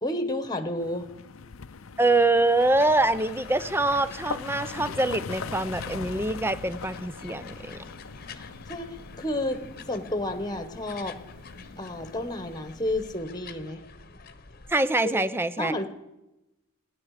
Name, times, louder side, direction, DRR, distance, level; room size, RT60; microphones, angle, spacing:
voice 1, 0.0-1.1 8.3-11.2 11.8-13.8 15.0-15.2 15.6-15.9, left 1 dB, 20° left, 9 dB, 1.4 m, -31 dB
sound 1, 0.8-12.6, left 5 dB, 75° left, 0.6 m, -41 dB
voice 2, 2.0-7.8 14.7-15.7, right 2 dB, 10° right, 14 dB, 0.6 m, -24 dB
sound 2, 2.6-14.8, left 4 dB, 45° left, 1.1 m, -47 dB
sound 3, 5.2-13.2, left 1 dB, 50° right, 2.9 m, -52 dB
28.0 x 9.9 x 5.0 m, 0.95 s
head